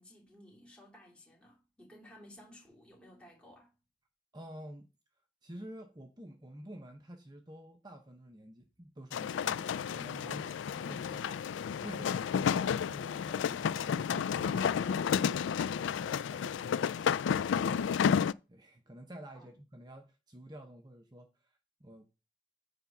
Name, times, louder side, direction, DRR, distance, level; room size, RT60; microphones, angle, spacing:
voice 1, 0.0-3.7 10.2-11.8 19.3-19.6, equal, 5° left, 3.0 m, -56 dB
voice 2, 4.3-4.9 5.4-11.2 11.8-15.5 15.8-17.6 18.2-22.1, right 1 dB, 20° right, 0.7 m, -50 dB
sound 1, 9.1-18.3, left 7 dB, 85° left, 0.3 m, -31 dB
9.2 x 3.5 x 5.8 m
head